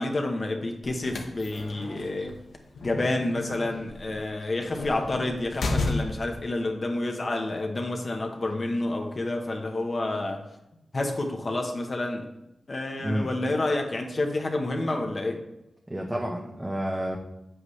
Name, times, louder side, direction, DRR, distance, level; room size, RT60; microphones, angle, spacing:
voice 1, 0.0-2.4 2.8-10.4 10.9-12.2 12.7-15.4, left 2 dB, 45° left, 2 dB, 1.1 m, -29 dB
sound 1, 0.8-6.4, left 2 dB, 85° left, 1.1 m, -33 dB
voice 2, 15.9-17.2, equal, 15° right, 0 dB, 0.9 m, -29 dB
8.0 x 7.9 x 3.2 m, 0.89 s
cardioid pair, 75°, 0 cm